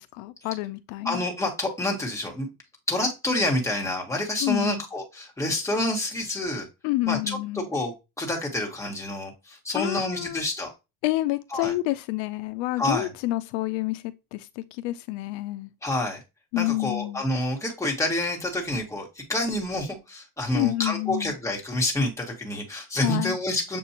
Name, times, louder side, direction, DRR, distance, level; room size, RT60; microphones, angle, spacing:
voice 1, 0.0-1.2 4.4-4.8 6.8-7.7 9.7-10.4 11.0-15.7 16.5-17.2 20.5-21.3 23.0-23.4, left 18 dB, 80° left, 0.5 m, -28 dB
voice 2, 1.0-2.5 2.9-6.7 7.1-10.7 11.5-11.7 12.8-13.1 15.8-16.2 16.5-23.8, left 1 dB, 5° left, 1.3 m, -28 dB
6.9 x 2.5 x 2.8 m
cardioid pair, 120°, 41 cm